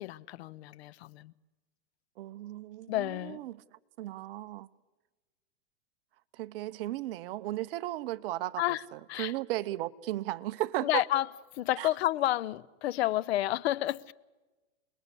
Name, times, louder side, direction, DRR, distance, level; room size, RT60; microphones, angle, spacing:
voice 1, 0.0-1.3 2.9-3.4 8.6-9.3 10.8-11.3 11.5-14.1, left 15 dB, 55° left, 0.7 m, -30 dB
voice 2, 2.2-3.6 4.0-4.7 6.3-8.6 8.9-11.0 11.8-11.9, right 16 dB, 50° right, 0.9 m, -35 dB
29.0 x 20.5 x 8.2 m
hypercardioid pair, 145°, 37 cm